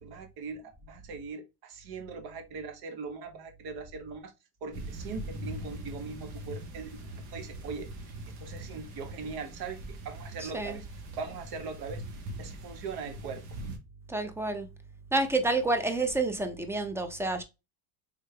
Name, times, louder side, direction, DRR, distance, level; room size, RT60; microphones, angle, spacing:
voice 1, 0.0-4.3 4.6-7.9 8.4-9.8 10.0-10.8 11.1-12.0 12.4-13.4, right 4 dB, 65° right, 1.0 m, -40 dB
sound 1, 4.7-13.8, right 1 dB, 90° right, 1.1 m, -42 dB
voice 2, 10.4-10.8 14.1-14.7 15.1-17.4, right 2 dB, 5° right, 0.5 m, -29 dB
3.6 x 3.2 x 2.2 m
cardioid pair, 115°, 40 cm